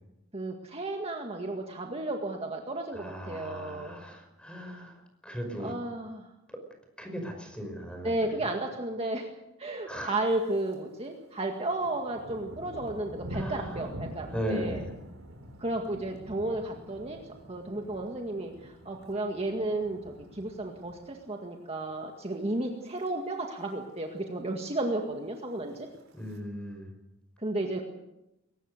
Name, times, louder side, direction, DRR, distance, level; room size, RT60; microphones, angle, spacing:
voice 1, 0.3-4.0 5.6-6.3 8.0-9.3 9.6-14.8 15.6-17.2 17.5-25.9 27.4-27.8, right 2 dB, 30° right, 2 dB, 1.9 m, -33 dB
voice 2, 2.9-4.9 5.2-5.7 6.5-6.6 7.0-8.3 9.9-10.1 13.3-13.8 14.3-14.9 26.1-26.9, equal, 5° left, 4 dB, 5.5 m, -37 dB
Thunder, 10.3-10.8 11.1-21.5 21.8-22.2 22.6-23.1 23.3-23.4 23.6-23.7 24.1-24.7 25.4-26.4, equal, 75° right, 4.0 m, -45 dB
22.0 x 19.0 x 6.7 m, 0.89 s
head